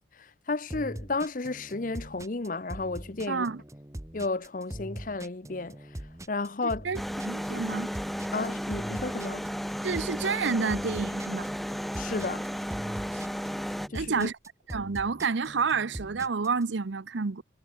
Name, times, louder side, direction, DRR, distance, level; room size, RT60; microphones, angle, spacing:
voice 1, 0.1-3.5 4.1-6.0 6.3-6.9 8.3-9.5 11.9-12.5 13.9-14.3, left 3 dB, 45° left, 0.8 m, -33 dB
sound 1, 0.7-16.6, right 1 dB, 15° right, 1.1 m, -42 dB
voice 2, 3.3-3.6 6.8-7.9 9.8-11.5 13.1-13.2 13.9-14.3 14.7-17.4, right 5 dB, 80° right, 0.7 m, -29 dB
sound 2, 6.9-13.9, equal, ahead, 0.5 m, -34 dB
head